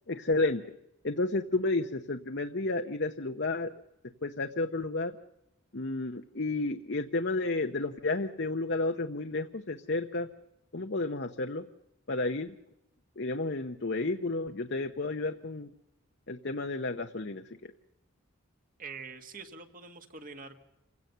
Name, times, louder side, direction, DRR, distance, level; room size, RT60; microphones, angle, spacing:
voice 1, 0.1-0.6 1.0-3.7 4.2-5.1 5.7-10.3 10.7-11.7 12.1-12.5 13.2-15.7 16.3-17.7, left 2 dB, 55° left, 5 dB, 0.9 m, -31 dB
voice 2, 18.8-20.6, right 4 dB, 40° right, 7 dB, 1.9 m, -45 dB
28.0 x 16.5 x 6.8 m, 0.87 s
head